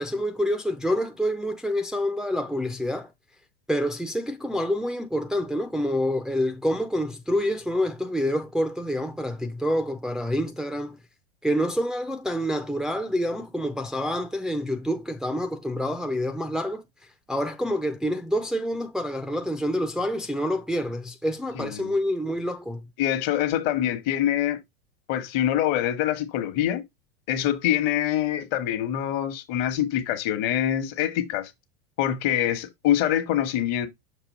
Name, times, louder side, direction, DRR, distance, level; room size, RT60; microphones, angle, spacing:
voice 1, 0.0-3.1 3.7-11.0 11.4-22.9, equal, ahead, 0.6 m, -27 dB
voice 2, 21.5-21.9 23.0-24.6 25.1-26.8 27.3-31.5 32.0-33.9, left 11 dB, 50° left, 1.2 m, -25 dB
6.8 x 2.7 x 5.2 m
hypercardioid pair, 100°, 31 cm